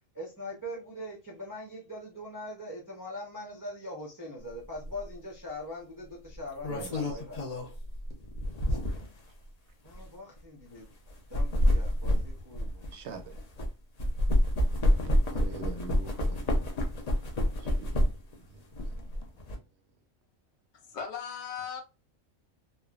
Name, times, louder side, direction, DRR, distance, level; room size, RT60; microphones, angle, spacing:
voice 1, 0.1-7.6 9.8-10.9 11.3-12.9, left 1 dB, 25° right, 0.4 m, -42 dB
sound 1, 4.8-5.0 6.3-9.2 9.9-10.0 11.1-13.7 14.0-18.3 18.7-19.6, equal, 45° left, 0.5 m, -28 dB
voice 2, 6.7-7.2 9.3-9.4 12.9-13.4 14.9-16.5 17.6-19.0, right 4 dB, 70° right, 0.8 m, -45 dB
voice 3, 20.7-21.8, left 7 dB, 65° left, 0.9 m, -38 dB
3.1 x 2.1 x 2.3 m
omnidirectional pair, 1.3 m